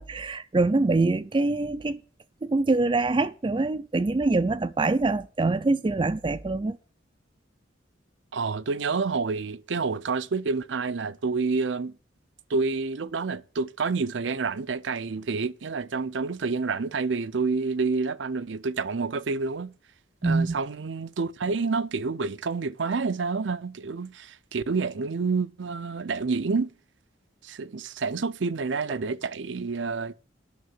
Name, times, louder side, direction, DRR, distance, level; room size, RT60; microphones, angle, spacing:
voice 1, 0.0-2.0 2.4-6.8 20.2-20.6, right 3 dB, 25° right, 0.4 m, -24 dB
voice 2, 8.3-11.9 12.5-19.7 20.2-26.7 27.4-30.1, right 4 dB, 70° right, 0.6 m, -28 dB
9.4 x 6.7 x 7.7 m
head